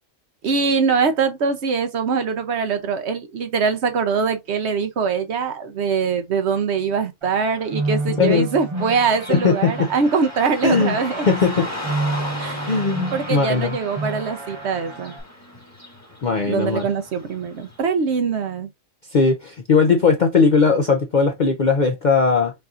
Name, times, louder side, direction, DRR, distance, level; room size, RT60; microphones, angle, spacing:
voice 1, 0.4-11.3 12.4-12.7 13.1-15.1 16.5-18.7, right 5 dB, 60° right, 0.9 m, -23 dB
sound 1, 7.2-15.2, right 2 dB, 25° right, 0.8 m, -30 dB
Car passing by / Traffic noise roadway noise, 8.8-17.8, left 1 dB, 10° left, 1.2 m, -36 dB
voice 2, 9.3-9.9 10.6-11.0 11.3-11.7 12.7-13.8 16.2-16.8 19.1-22.5, left 4 dB, 50° left, 0.5 m, -18 dB
5.5 x 2.7 x 2.4 m
omnidirectional pair, 1.4 m